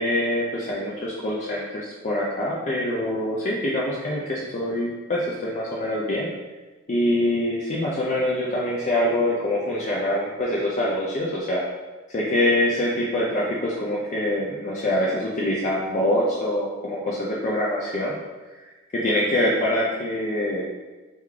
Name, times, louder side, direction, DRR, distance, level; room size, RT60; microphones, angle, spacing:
voice 1, 0.0-6.3 6.9-11.6 12.1-18.1 18.9-20.6, left 1 dB, 35° left, -5 dB, 0.5 m, -24 dB
3.5 x 3.1 x 3.6 m, 1.2 s
head